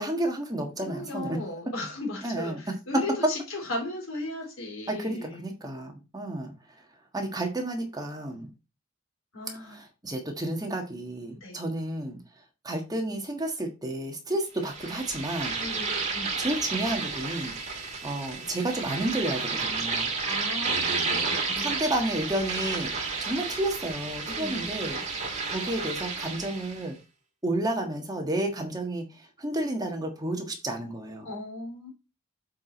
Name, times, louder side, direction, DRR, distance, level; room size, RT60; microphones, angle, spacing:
voice 1, 0.0-1.6 2.2-2.6 4.9-6.5 7.1-8.5 9.7-12.2 12.6-15.6 16.4-17.5 17.8-20.1 21.6-25.0 25.5-26.9 27.4-31.3, right 1 dB, 20° right, 1.5 m, -31 dB
voice 2, 0.8-5.4 9.3-9.8 11.4-11.6 15.6-16.4 20.2-21.9 24.3-24.7 31.2-31.9, left 2 dB, 70° left, 3.6 m, -36 dB
sound 1, 14.6-26.9, right 4 dB, 35° right, 2.2 m, -31 dB
7.6 x 4.7 x 4.4 m
head